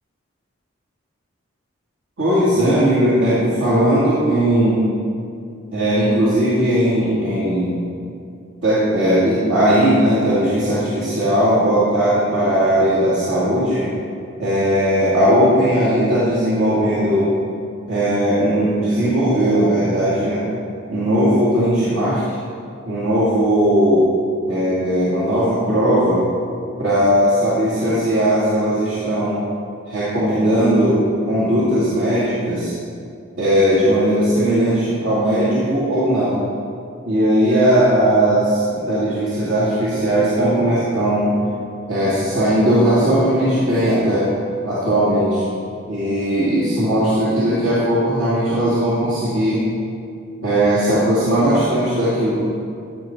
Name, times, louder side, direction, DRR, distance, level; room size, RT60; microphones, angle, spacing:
voice 1, 2.2-4.9 5.7-7.7 8.6-13.9 14.4-17.3 17.9-20.4 20.9-22.4 22.8-24.1 24.5-26.2 26.8-29.4 29.9-32.8 33.4-36.4 37.0-41.3 41.9-44.3 44.6-45.4 45.9-49.7 50.4-52.4, equal, 80° right, -10 dB, 2.4 m, -18 dB
14.0 x 7.0 x 4.5 m, 2.5 s
head